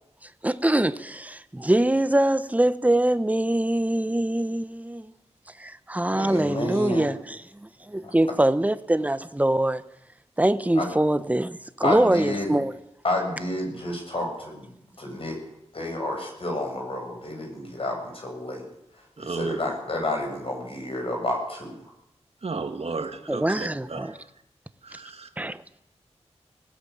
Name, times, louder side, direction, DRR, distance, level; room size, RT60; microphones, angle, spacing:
voice 1, 0.4-5.1 5.6-9.8 10.4-12.7 23.3-24.2 25.4-25.6, right 1 dB, 15° right, 1.0 m, -23 dB
voice 2, 6.1-7.1 10.7-10.9 11.8-12.5 13.0-15.4 15.7-18.6 18.9-21.9, left 1 dB, 55° left, 7.9 m, -30 dB
voice 3, 19.2-19.6 22.4-24.2 24.8-25.3, right 4 dB, 60° right, 2.3 m, -33 dB
19.5 x 17.5 x 8.7 m
wide cardioid pair, 100°, 12 cm